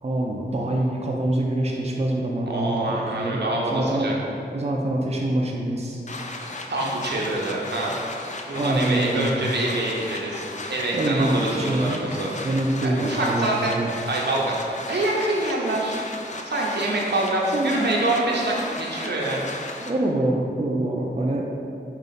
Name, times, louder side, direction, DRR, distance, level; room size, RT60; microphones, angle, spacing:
voice 1, 0.0-3.4 3.7-4.1 4.5-6.0 8.5-9.6 10.9-13.9 17.5-17.9 19.8-21.4, right 1 dB, 35° right, -1 dB, 0.5 m, -25 dB
voice 2, 2.5-4.1 6.7-8.0 8.5-10.4 10.7-12.3 12.8-13.8 14.1-14.6 14.9-16.0 16.4-19.5, right 2 dB, 70° right, -3 dB, 0.7 m, -25 dB
sound 1, 6.1-19.9, left 2 dB, 40° left, 0.4 m, -35 dB
5.0 x 2.4 x 4.1 m, 2.5 s
wide cardioid pair, 45°, 18 cm